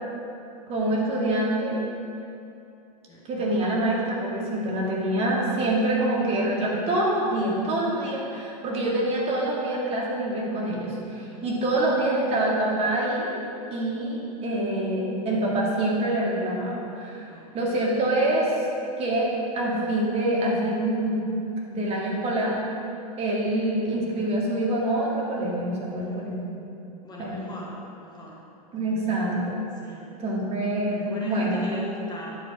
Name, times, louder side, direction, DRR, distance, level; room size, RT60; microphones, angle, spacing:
voice 1, 0.7-1.8 3.3-13.3 13.7-17.3 17.5-18.5 19.0-21.3 21.7-22.6 23.2-26.5 27.2-27.4 28.7-29.6 30.2-31.6, right 1 dB, 30° right, -4 dB, 2.0 m, -26 dB
voice 2, 25.9-26.3 27.0-28.4 29.7-30.0 30.9-32.3, left 1 dB, 20° left, -4 dB, 1.2 m, -40 dB
10.5 x 5.0 x 4.7 m, 2.7 s
hypercardioid pair, 105°, 21 cm